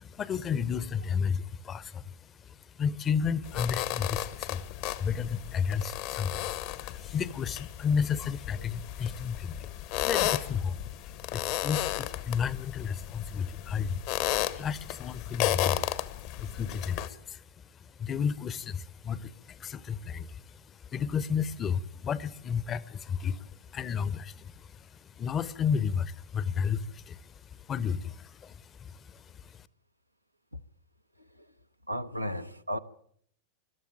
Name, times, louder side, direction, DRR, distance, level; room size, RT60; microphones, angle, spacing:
voice 1, 0.0-29.7, left 6 dB, 25° left, 0.9 m, -33 dB
sound 1, 3.4-17.1, left 14 dB, 45° left, 1.2 m, -34 dB
voice 2, 31.2-32.8, equal, 90° right, 0.9 m, -36 dB
22.0 x 13.0 x 9.0 m
figure-of-eight pair, 90°, 0 cm